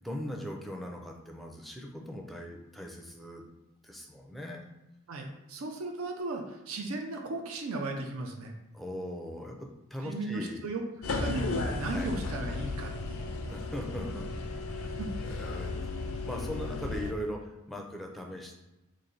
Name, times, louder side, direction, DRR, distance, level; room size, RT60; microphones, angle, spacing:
voice 1, 0.0-3.5 3.8-4.6 8.7-10.7 11.8-12.1 13.4-14.3 14.7-14.9 15.3-15.9 16.2-18.5, equal, ahead, 0 dB, 0.4 m, -39 dB
voice 2, 5.1-8.5 10.0-13.3 15.0-15.1, right 2 dB, 90° right, 3 dB, 0.5 m, -36 dB
sound 1, 11.0-17.1, left 3 dB, 90° left, 0.5 m, -34 dB
3.2 x 2.6 x 3.9 m, 0.96 s
head